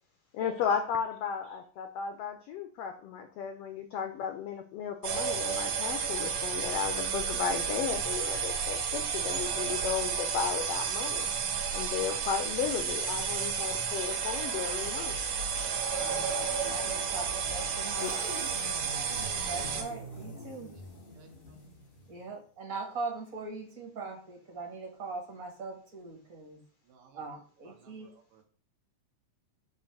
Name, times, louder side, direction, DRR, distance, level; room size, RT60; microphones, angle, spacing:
voice 1, 0.3-11.3 11.7-15.1 15.6-15.9 16.7-16.8 18.0-18.1, left 7 dB, 85° left, 6 dB, 1.3 m, -34 dB
sound 1, 5.0-19.8, right 6 dB, 65° right, 1.8 m, -32 dB
voice 2, 16.0-16.4 16.7-18.3 19.3-20.8 22.1-26.6 27.1-28.1, right 3 dB, 50° right, -1 dB, 0.9 m, -41 dB
sound 2, 17.9-22.2, left 1 dB, 60° left, 0.5 m, -45 dB
voice 3, 18.8-19.5 21.2-21.3 26.9-27.2 28.0-28.1, right 7 dB, 85° right, 3 dB, 2.6 m, -57 dB
7.1 x 2.6 x 5.7 m, 0.43 s
omnidirectional pair, 3.5 m